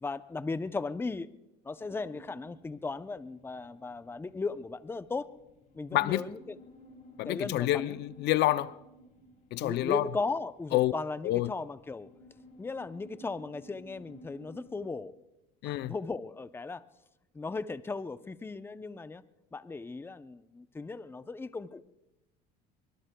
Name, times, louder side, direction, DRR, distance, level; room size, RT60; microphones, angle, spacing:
voice 1, 0.0-1.3 1.6-5.3 5.7-6.6 7.2-8.0 9.6-12.1 12.6-15.1 15.6-16.8 17.3-19.2 19.5-21.8, left 3 dB, 10° left, 0.6 m, -37 dB
sound 1, 1.8-14.9, equal, 45° left, 4.1 m, -56 dB
voice 2, 5.9-6.3 7.2-8.7 9.5-10.0 10.7-10.9 11.2-11.5 15.6-15.9, left 16 dB, 60° left, 0.5 m, -28 dB
24.5 x 23.0 x 2.2 m
supercardioid pair, 95°, 20 cm